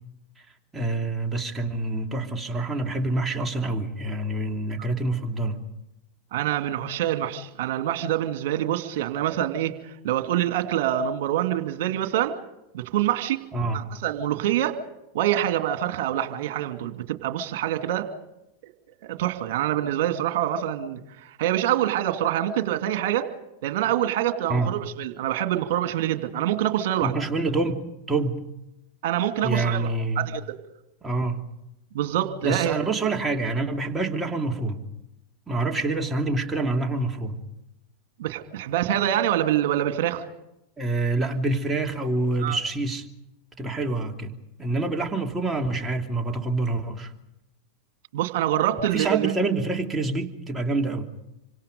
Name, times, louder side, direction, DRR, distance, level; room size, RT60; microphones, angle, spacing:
voice 1, 0.7-5.6 13.5-13.8 24.5-24.7 27.0-28.4 29.4-30.3 31.0-31.4 32.4-34.8 35.5-37.4 40.8-43.1 43.6-47.1 48.9-51.1, right 2 dB, 15° right, 2 dB, 2.8 m, -26 dB
voice 2, 6.3-12.4 12.7-13.4 13.7-14.8 15.1-18.1 19.0-23.3 23.6-27.2 29.0-29.9 30.2-30.4 31.9-32.8 38.2-40.2 42.4-42.6 48.1-49.4, right 12 dB, 60° right, 7 dB, 2.5 m, -25 dB
27.5 x 25.5 x 5.3 m, 0.88 s
figure-of-eight pair, 90°, 0 cm